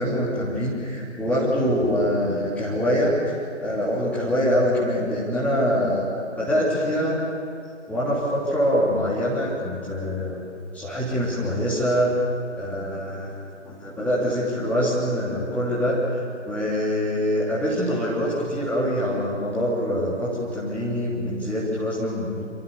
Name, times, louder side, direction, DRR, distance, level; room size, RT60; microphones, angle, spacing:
voice 1, 0.0-7.2 7.9-10.4 10.7-12.1 12.6-22.4, equal, 5° left, -8 dB, 3.3 m, -24 dB
28.0 x 26.5 x 7.1 m, 2.7 s
figure-of-eight pair, 140°, 36 cm